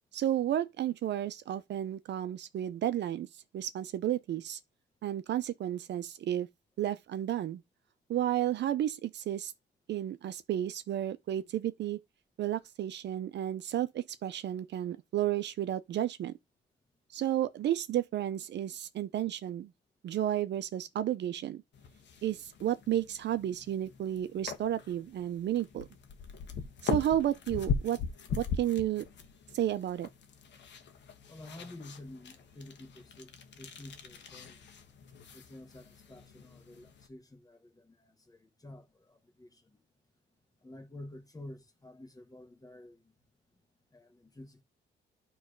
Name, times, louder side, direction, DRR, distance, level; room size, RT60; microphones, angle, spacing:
voice 1, 0.1-3.3 3.5-4.6 5.0-6.5 6.8-7.6 8.1-9.5 9.9-12.0 12.4-16.3 17.1-19.7 20.0-21.6 22.2-25.8 26.8-28.0 28.3-29.0 29.5-30.1, right 11 dB, 60° right, 0.5 m, -32 dB
sound 1, 21.7-37.1, left 5 dB, 65° left, 1.2 m, -41 dB
voice 2, 31.3-33.3 33.6-34.6 35.3-39.8 40.6-43.0 43.9-44.6, left 1 dB, 20° left, 1.4 m, -50 dB
9.5 x 3.2 x 5.1 m
cardioid pair, 90°, 20 cm